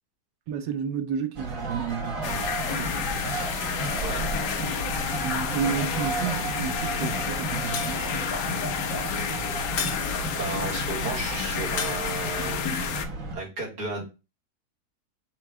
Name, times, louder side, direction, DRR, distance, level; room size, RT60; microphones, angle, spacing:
voice 1, 0.5-3.1 5.2-8.0, right 7 dB, 85° right, 1.3 m, -32 dB
sound 1, 1.3-13.4, right 2 dB, 55° right, 1.5 m, -33 dB
sound 2, 2.2-13.1, left 7 dB, 85° left, 1.2 m, -30 dB
Shatter, 7.7-8.5 9.8-10.6 11.8-12.6, left 6 dB, 55° left, 0.8 m, -34 dB
voice 2, 10.4-12.8 13.3-14.0, right 3 dB, 70° right, 2.2 m, -33 dB
4.5 x 2.3 x 4.7 m
omnidirectional pair, 1.8 m